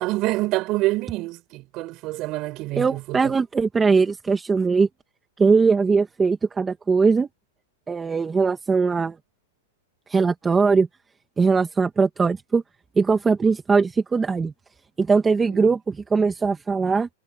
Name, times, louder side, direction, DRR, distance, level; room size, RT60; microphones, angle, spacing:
voice 1, 0.0-3.3 15.5-15.7, right 19 dB, 35° right, 7.3 m, -27 dB
voice 2, 2.8-4.9 5.4-7.3 7.9-9.2 10.1-10.9 11.4-12.6 13.0-14.5 15.0-17.1, right 4 dB, 10° right, 1.9 m, -20 dB
hypercardioid pair, 150°, 0 cm